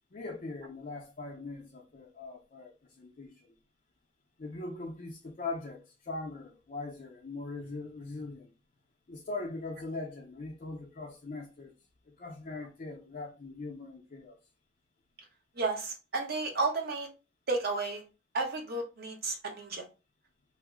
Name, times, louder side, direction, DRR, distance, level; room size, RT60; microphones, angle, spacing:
voice 1, 0.1-3.5 4.4-8.5 9.1-11.7 12.1-14.4, left 3 dB, 45° left, 0.5 m, -41 dB
voice 2, 15.6-17.1 17.5-18.0 18.3-19.8, right 3 dB, 55° right, 0.8 m, -32 dB
2.8 x 2.0 x 3.5 m
head